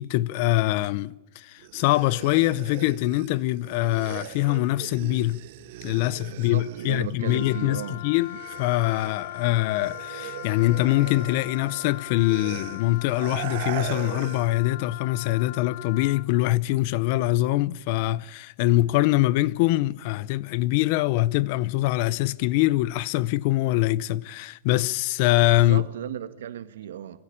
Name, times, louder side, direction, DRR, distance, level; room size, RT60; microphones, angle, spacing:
voice 1, 0.0-5.4 5.8-25.8, left 17 dB, 45° left, 0.7 m, -24 dB
sound 1, 1.6-7.8 8.1-14.6, right 16 dB, 50° right, 0.9 m, -40 dB
voice 2, 6.3-8.0 25.6-27.2, right 10 dB, 85° right, 1.6 m, -35 dB
Wind instrument woodwind instrument, 7.2-16.3, left 15 dB, 75° left, 1.2 m, -40 dB
24.5 x 16.0 x 8.8 m
supercardioid pair, 165°, 0 cm